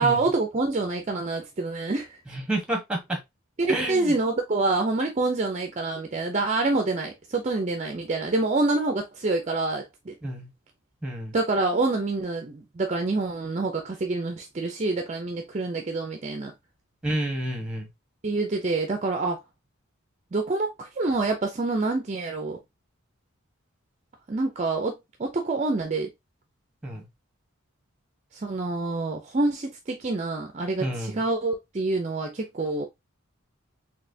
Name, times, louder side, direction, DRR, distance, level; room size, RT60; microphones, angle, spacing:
voice 1, 0.0-2.2 3.6-10.1 11.3-16.5 18.2-19.4 20.3-22.6 24.3-26.1 28.3-32.8, right 3 dB, 30° right, 0.4 m, -27 dB
voice 2, 2.3-3.2 3.7-4.1 10.2-10.5 11.0-11.3 17.0-17.9 26.8-27.1 30.8-31.2, right 1 dB, 5° right, 1.0 m, -29 dB
4.1 x 2.9 x 2.6 m
head